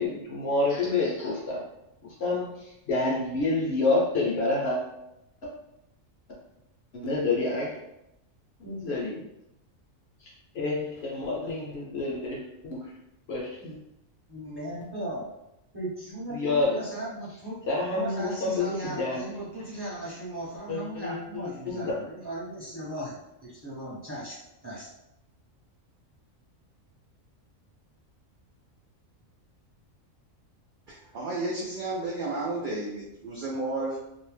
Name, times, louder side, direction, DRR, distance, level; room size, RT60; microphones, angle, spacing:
voice 1, 0.0-1.6 2.2-2.4 2.9-4.8 6.9-7.7 8.6-9.2 10.5-12.8 13.3-13.8 16.3-16.8 17.7-19.2 20.7-21.2 21.6-21.9, left 3 dB, 60° left, -3 dB, 0.9 m, -28 dB
voice 2, 14.3-15.3 15.7-17.6 17.9-24.4 24.6-24.9, right 1 dB, 25° right, -8 dB, 0.7 m, -37 dB
voice 3, 30.9-34.0, right 2 dB, 70° right, -4 dB, 0.4 m, -32 dB
2.6 x 2.0 x 3.1 m, 0.87 s
omnidirectional pair, 1.4 m